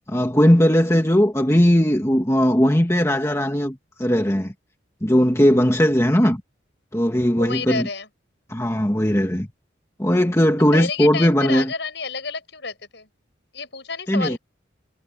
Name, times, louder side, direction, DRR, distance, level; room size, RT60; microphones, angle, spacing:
voice 1, 0.1-4.5 5.0-6.4 6.9-7.9 8.5-9.5 10.0-11.7 14.1-14.4, equal, 15° left, 1.8 m, -18 dB
voice 2, 7.4-8.1 10.7-13.1 13.5-14.4, left 4 dB, 65° left, 6.6 m, -30 dB
head